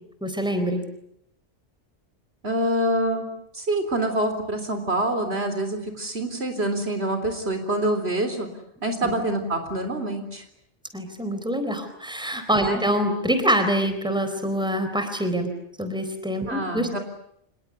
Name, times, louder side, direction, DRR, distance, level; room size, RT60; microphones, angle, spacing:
voice 1, 0.2-0.8 9.0-9.1 10.9-15.5 15.8-17.0, equal, 5° right, 8 dB, 4.1 m, -25 dB
voice 2, 2.4-3.3 3.5-8.5 8.8-10.4 12.6-12.8 16.5-17.0, right 1 dB, 60° right, 6 dB, 4.0 m, -26 dB
26.5 x 21.0 x 9.6 m, 0.73 s
omnidirectional pair, 1.2 m